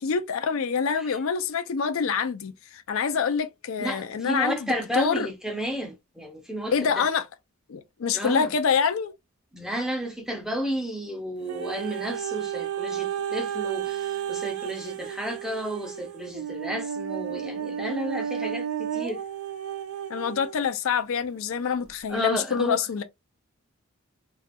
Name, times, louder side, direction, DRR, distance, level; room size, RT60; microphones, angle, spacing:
voice 1, 0.0-5.3 6.7-7.2 7.7-9.1 20.1-23.0, left 6 dB, 65° left, 0.4 m, -26 dB
voice 2, 3.8-7.1 8.1-8.5 9.5-19.2 22.1-22.8, equal, ahead, 0.5 m, -32 dB
sound 1, 11.5-20.6 21.2-21.3, right 8 dB, 70° right, 0.3 m, -32 dB
2.3 x 2.3 x 2.5 m
head